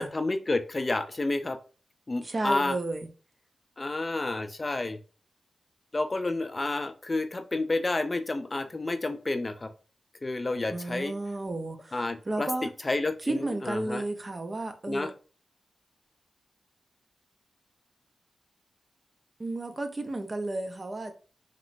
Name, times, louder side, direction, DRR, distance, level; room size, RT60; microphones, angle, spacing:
voice 1, 0.0-1.6 2.1-2.8 3.8-5.0 5.9-9.7 10.2-11.1 11.9-12.5 12.8-14.0 14.9-15.1, left 2 dB, 30° left, 0.3 m, -30 dB
voice 2, 2.2-3.1 10.7-12.7 13.2-15.1 19.4-21.1, right 2 dB, 35° right, 0.5 m, -33 dB
3.0 x 2.9 x 2.5 m
wide cardioid pair, 90°, 0 cm